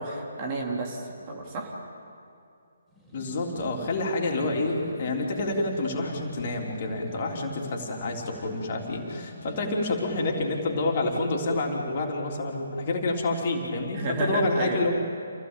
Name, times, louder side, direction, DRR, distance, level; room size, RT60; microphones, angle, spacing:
voice 1, 0.0-1.7 13.9-14.8, right 2 dB, 30° right, -1 dB, 4.0 m, -30 dB
sound 1, 2.9-11.2, equal, ahead, 7.3 m, -45 dB
voice 2, 3.1-14.9, left 2 dB, 45° left, 0 dB, 3.5 m, -28 dB
27.5 x 17.0 x 8.9 m, 2.5 s
figure-of-eight pair, 140°, 0 cm